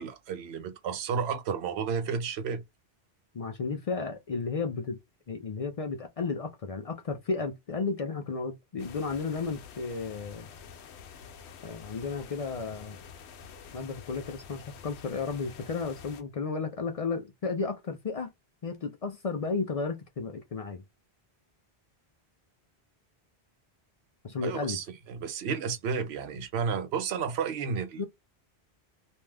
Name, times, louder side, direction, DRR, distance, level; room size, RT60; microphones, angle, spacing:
voice 1, 0.0-2.6 24.4-28.1, right 6 dB, 80° right, 0.8 m, -32 dB
voice 2, 3.3-5.0 5.3-10.5 11.6-13.0 13.7-18.3 18.6-20.8 24.2-24.8 28.0-28.1, left 4 dB, 50° left, 0.4 m, -33 dB
sound 1, 8.8-16.2, left 7 dB, 85° left, 0.9 m, -48 dB
2.6 x 2.2 x 3.2 m
omnidirectional pair, 1.1 m